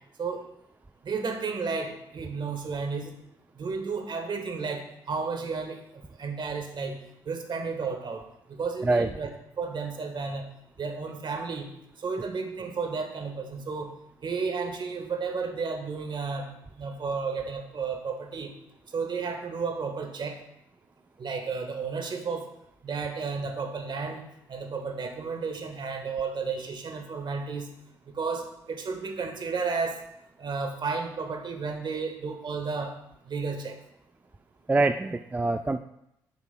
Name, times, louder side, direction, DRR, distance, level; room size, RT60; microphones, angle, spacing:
voice 1, 1.0-3.2 3.6-7.0 7.2-9.3 9.6-10.5 10.8-11.7 12.0-13.9 14.2-18.5 18.9-20.4 21.2-22.5 22.8-27.7 28.1-30.0 30.4-32.9 33.3-33.8, right 4 dB, 50° right, 4 dB, 1.4 m, -32 dB
voice 2, 34.7-35.8, right 2 dB, 15° right, 9 dB, 0.3 m, -24 dB
9.6 x 5.9 x 2.2 m, 0.80 s
hypercardioid pair, 50°, 10 cm